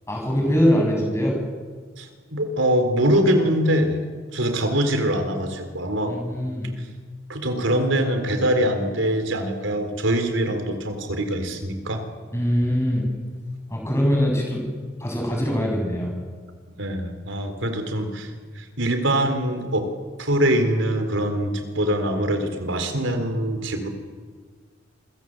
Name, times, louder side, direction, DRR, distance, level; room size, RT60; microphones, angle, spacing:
voice 1, 0.1-1.4 6.1-6.7 12.3-13.0 13.7-14.6 15.0-16.1, equal, 15° left, 0 dB, 7.5 m, -22 dB
voice 2, 2.0-4.0 4.3-6.1 7.3-12.0 16.8-18.3 18.6-19.9 20.2-23.9, right 1 dB, 75° right, 7 dB, 4.0 m, -23 dB
27.5 x 23.5 x 8.0 m, 1.5 s
head